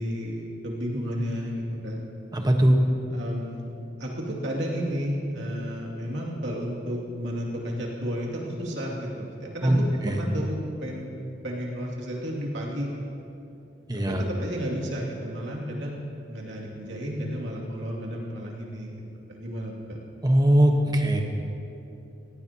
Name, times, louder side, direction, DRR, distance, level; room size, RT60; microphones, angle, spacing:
voice 1, 0.0-2.0 3.1-3.7 4.0-11.1 11.4-13.0 13.9-16.0 16.3-18.9 19.3-20.0, equal, 80° right, -3 dB, 2.5 m, -32 dB
voice 2, 2.3-2.8 9.6-9.8 10.0-10.2 13.9-14.2 20.2-21.2, right 1 dB, 20° right, 3 dB, 1.2 m, -20 dB
18.5 x 16.0 x 2.9 m, 2.8 s
head